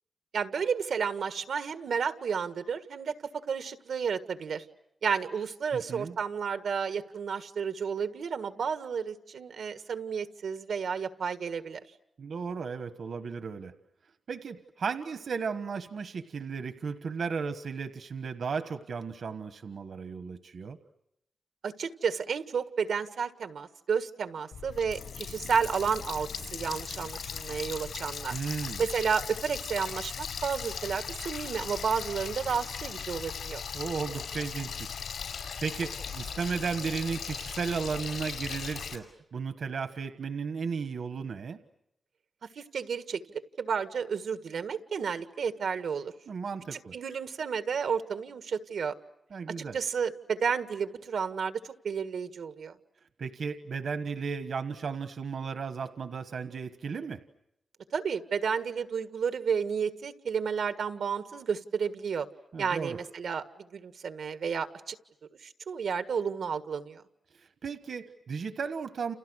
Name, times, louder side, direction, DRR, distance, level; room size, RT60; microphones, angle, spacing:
voice 1, 0.3-3.1 3.5-4.6 5.0-11.8 21.6-28.4 28.8-33.6 42.5-46.1 46.7-48.9 49.7-52.7 57.9-62.3 62.6-63.4 63.7-65.0 65.4-67.0, right 6 dB, 85° right, 9 dB, 1.7 m, -31 dB
voice 2, 5.7-6.1 12.2-13.7 14.3-20.8 28.3-28.8 33.7-35.0 35.6-39.1 39.3-41.6 46.3-46.9 49.3-49.8 53.2-57.2 62.5-63.0 67.6-69.1, right 5 dB, 65° right, 10 dB, 1.4 m, -35 dB
Water tap faucet, 24.5-39.0, left 6 dB, 90° left, 5.4 m, -38 dB
30.0 x 29.5 x 6.4 m, 0.81 s
wide cardioid pair, 165°, 0 cm